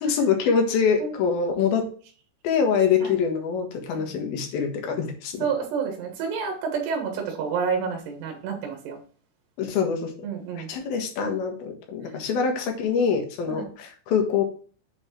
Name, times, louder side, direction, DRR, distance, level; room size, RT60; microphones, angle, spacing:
voice 1, 0.0-1.9 2.4-5.4 9.6-10.3 10.6-14.4, left 6 dB, 65° left, 3 dB, 2.6 m, -24 dB
voice 2, 5.4-9.0 10.2-10.7 13.5-13.7, right 6 dB, 70° right, 2 dB, 3.1 m, -29 dB
8.2 x 4.3 x 4.4 m, 0.40 s
omnidirectional pair, 6.0 m